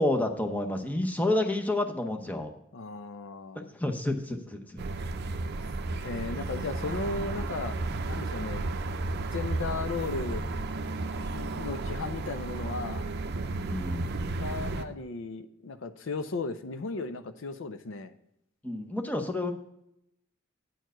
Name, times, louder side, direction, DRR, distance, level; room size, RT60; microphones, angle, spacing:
voice 1, 0.0-2.5 3.6-4.8 13.6-14.1 18.6-19.5, left 1 dB, 10° left, 4 dB, 0.8 m, -29 dB
voice 2, 2.7-3.7 6.0-7.8 8.1-8.7 9.2-10.4 11.1-13.0 14.4-18.1, left 3 dB, 65° left, 10 dB, 0.5 m, -36 dB
sound 1, 4.8-14.9, right 2 dB, 50° right, 0.5 m, -33 dB
9.2 x 4.5 x 6.1 m, 0.77 s
head